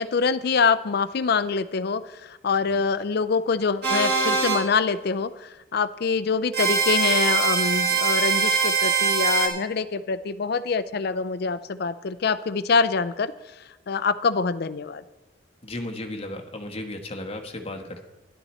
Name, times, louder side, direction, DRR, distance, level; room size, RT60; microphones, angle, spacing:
voice 1, 0.0-13.3 13.9-15.0, left 5 dB, 55° left, 14 dB, 0.5 m, -25 dB
sound 1, 3.8-4.6 6.5-9.5, right 5 dB, 55° right, 2.1 m, -22 dB
voice 2, 15.6-18.0, left 1 dB, 30° left, 3 dB, 1.2 m, -35 dB
12.0 x 11.0 x 4.3 m, 1.0 s
head